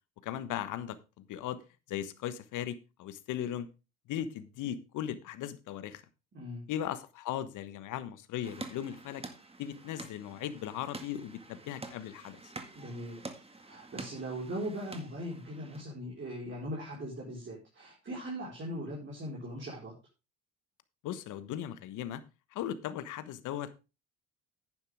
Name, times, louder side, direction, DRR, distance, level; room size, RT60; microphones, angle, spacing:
voice 1, 0.2-1.6 1.9-3.7 4.1-6.0 6.7-9.2 9.6-12.5 21.0-22.2 22.5-23.7, left 11 dB, 70° left, 1.3 m, -38 dB
voice 2, 6.3-6.6 12.7-13.2 13.7-19.9, equal, 35° right, 4.7 m, -39 dB
sound 1, 8.4-15.8, right 3 dB, 20° right, 2.0 m, -47 dB
10.5 x 9.8 x 3.5 m
supercardioid pair, 70°, 32 cm